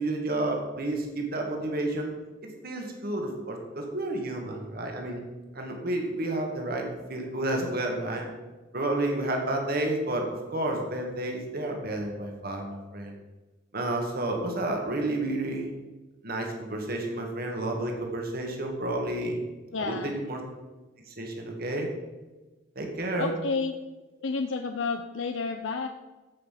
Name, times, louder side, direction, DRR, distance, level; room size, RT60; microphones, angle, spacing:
voice 1, 0.0-2.1 2.4-5.2 5.5-8.3 8.7-13.1 13.7-15.7 16.2-19.4 19.8-20.4 21.1-21.9 22.8-23.3, right 1 dB, 50° right, 2 dB, 2.0 m, -31 dB
voice 2, 19.7-20.1 23.2-23.7 24.2-25.9, left 4 dB, 80° left, 6 dB, 0.7 m, -30 dB
15.5 x 5.7 x 6.0 m, 1.2 s
head